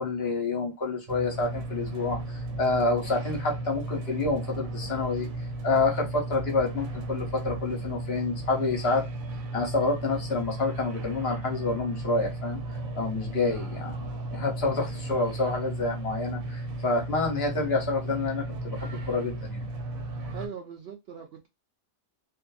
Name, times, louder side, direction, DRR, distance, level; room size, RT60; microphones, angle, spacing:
voice 1, 0.0-5.3 5.6-9.0 9.5-12.6 13.0-19.6, left 3 dB, 55° left, 1.0 m, -28 dB
sound 1, 1.1-20.5, right 2 dB, 85° right, 1.1 m, -35 dB
voice 2, 20.3-21.5, right 7 dB, 65° right, 0.6 m, -40 dB
2.6 x 2.5 x 2.3 m
omnidirectional pair, 1.4 m